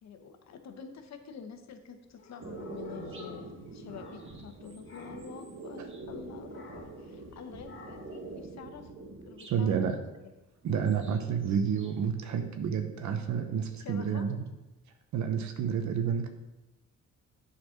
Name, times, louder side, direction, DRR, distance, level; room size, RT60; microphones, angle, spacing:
voice 1, 0.0-8.9 9.3-9.9 10.2-10.3 13.7-14.3, left 6 dB, 60° left, 6 dB, 1.1 m, -47 dB
sound 1, 2.1-4.6 4.8-5.4 6.5-7.1 7.6-8.2, left 5 dB, 40° left, 1.8 m, -52 dB
sound 2, 2.4-9.6 10.6-11.9 12.2-13.2, right 3 dB, 40° right, 1.3 m, -45 dB
voice 2, 9.5-10.0 10.6-14.4 15.1-16.3, right 7 dB, 70° right, 6 dB, 0.9 m, -29 dB
7.9 x 4.3 x 5.8 m, 1.0 s
cardioid pair, 90°, 30 cm